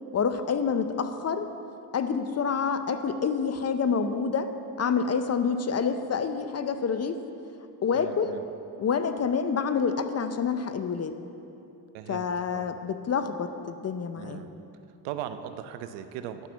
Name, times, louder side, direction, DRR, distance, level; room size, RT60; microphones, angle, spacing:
voice 1, 0.1-1.5 1.9-4.5 4.8-7.2 7.8-8.4 8.8-11.2 12.1-14.5, left 6 dB, 35° left, 9 dB, 0.7 m, -27 dB
voice 2, 7.9-8.4 11.9-12.7 14.1-14.6 15.0-16.5, right 10 dB, 80° right, 10 dB, 0.7 m, -39 dB
10.5 x 6.0 x 6.8 m, 2.8 s
supercardioid pair, 70°, 47 cm